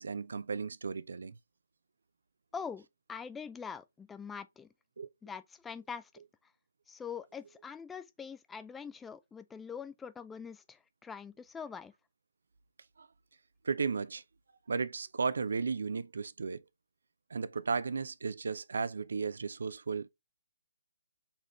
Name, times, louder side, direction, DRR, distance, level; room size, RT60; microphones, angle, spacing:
voice 1, 0.0-1.4 5.0-5.1 13.0-13.1 13.6-14.2 14.7-16.6 17.3-20.1, right 5 dB, 65° right, 0.4 m, -34 dB
voice 2, 2.5-4.7 5.2-6.1 6.9-11.9, left 6 dB, 10° left, 0.3 m, -44 dB
4.2 x 3.6 x 3.0 m
figure-of-eight pair, 135°, 0 cm